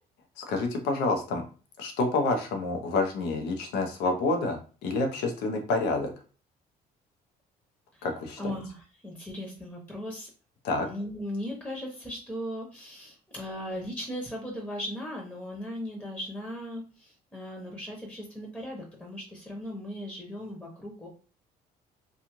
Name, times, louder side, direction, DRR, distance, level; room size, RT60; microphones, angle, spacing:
voice 1, 0.4-1.4 1.8-6.1 8.0-8.5 10.6-10.9, left 3 dB, 85° left, 4 dB, 0.7 m, -28 dB
voice 2, 8.4-10.3 10.8-21.1, equal, 10° left, -1 dB, 0.7 m, -38 dB
2.6 x 2.3 x 2.9 m, 0.38 s
cardioid pair, 110°, 17 cm